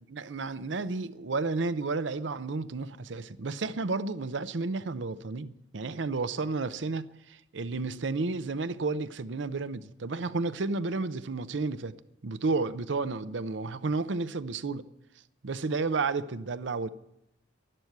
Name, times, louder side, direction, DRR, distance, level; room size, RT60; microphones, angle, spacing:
voice 1, 0.0-11.9 12.2-14.8 15.4-16.9, right 3 dB, 75° right, 0.7 m, -32 dB
12.0 x 12.0 x 8.0 m
head